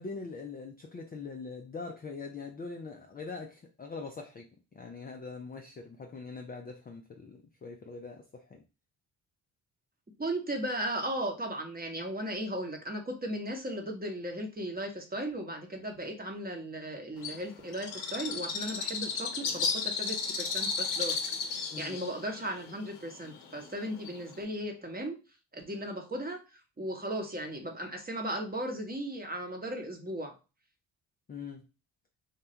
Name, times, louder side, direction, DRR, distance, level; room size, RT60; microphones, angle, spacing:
voice 1, 0.0-8.6 21.7-22.0 31.3-31.6, left 4 dB, 20° left, 0.4 m, -42 dB
voice 2, 10.2-21.2 21.5-25.1 25.5-26.4 26.8-30.3, right 1 dB, 20° right, 0.9 m, -36 dB
Bird, 17.2-24.4, left 5 dB, 50° left, 0.7 m, -34 dB
3.2 x 2.2 x 2.8 m
hypercardioid pair, 45°, 50 cm